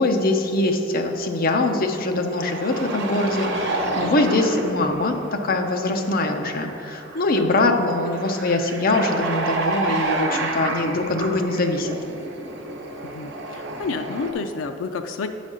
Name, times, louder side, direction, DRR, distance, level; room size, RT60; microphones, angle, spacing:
voice 1, 0.0-5.2 5.4-12.0, left 2 dB, 50° left, 4 dB, 0.7 m, -22 dB
sound 1, 2.3-14.3, right 2 dB, 60° right, 1.0 m, -30 dB
voice 2, 13.0-15.3, left 4 dB, 80° left, 6 dB, 0.4 m, -30 dB
8.8 x 4.1 x 6.2 m, 2.8 s
head